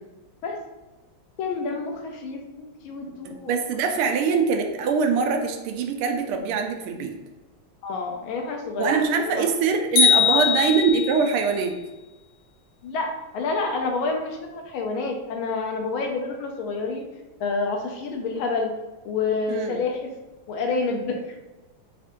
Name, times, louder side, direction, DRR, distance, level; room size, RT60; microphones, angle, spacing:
voice 1, 1.4-3.6 7.8-8.9 9.3-9.5 10.2-10.6 12.8-17.0 17.4-18.7 19.0-20.1 20.5-21.2, left 4 dB, 75° left, 2 dB, 1.4 m, -28 dB
voice 2, 3.2-7.1 8.8-11.7 19.5-19.8, right 5 dB, 80° right, 4 dB, 1.4 m, -23 dB
sound 1, 10.0-11.3, left 6 dB, 45° left, 0.7 m, -20 dB
4.3 x 2.5 x 3.6 m, 1.1 s
omnidirectional pair, 2.4 m